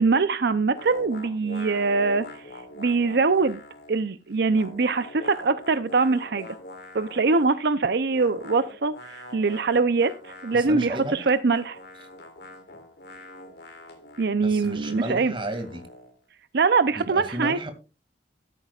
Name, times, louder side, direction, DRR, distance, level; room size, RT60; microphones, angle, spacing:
voice 1, 0.0-2.5 2.8-3.6 3.9-6.5 6.9-11.8 14.2-15.3 16.5-17.6, right 4 dB, 60° right, 12 dB, 0.6 m, -23 dB
sound 1, 0.8-4.1 4.3-7.6 8.1-16.1, left 1 dB, 60° left, 2.8 m, -44 dB
voice 2, 10.5-11.3 14.4-15.8 17.0-17.7, right 1 dB, 25° right, 7 dB, 2.2 m, -33 dB
14.0 x 12.5 x 2.4 m, 0.31 s
head